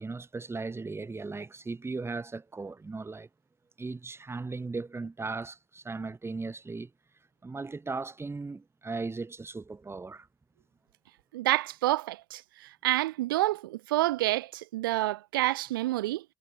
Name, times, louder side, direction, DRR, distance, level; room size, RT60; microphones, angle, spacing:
voice 1, 0.0-3.3 3.8-6.9 7.4-10.3, right 3 dB, 20° right, 7.7 m, -37 dB
voice 2, 11.3-12.4 12.8-16.2, right 17 dB, 90° right, 1.9 m, -28 dB
hypercardioid pair, 70°, 11 cm